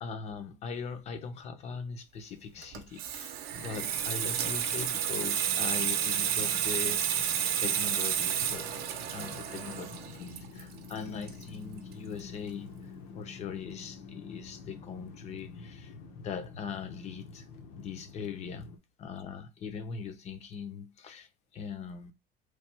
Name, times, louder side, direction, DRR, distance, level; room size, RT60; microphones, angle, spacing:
voice 1, 0.0-7.2 7.6-17.5 17.8-18.7 19.0-21.3 21.5-22.1, left 6 dB, 35° left, 0.6 m, -41 dB
Water tap faucet / Sink (filling or washing), 2.6-11.9 12.2-12.5, right 9 dB, 55° right, 0.7 m, -31 dB
sound 1, 3.6-18.8, left 4 dB, 75° left, 1.0 m, -48 dB
3.2 x 2.3 x 4.3 m
cardioid pair, 155°, 20 cm